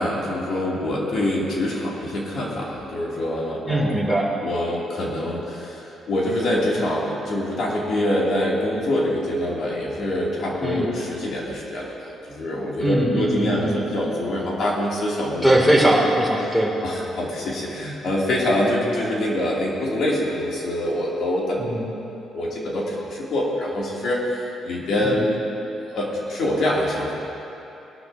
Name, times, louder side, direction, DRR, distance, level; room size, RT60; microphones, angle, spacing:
voice 1, 0.0-4.0 4.4-15.4 16.4-16.6 16.8-21.8 22.3-25.4 25.9-27.1, left 1 dB, 65° left, -4 dB, 3.2 m, -25 dB
voice 2, 3.7-4.3 10.6-10.9 12.8-13.7 15.4-16.8 18.8-18.9 21.6-21.9 25.0-25.2, right 1 dB, 5° left, -3 dB, 3.1 m, -21 dB
20.0 x 12.5 x 3.0 m, 2.9 s
cardioid pair, 90°, 0 cm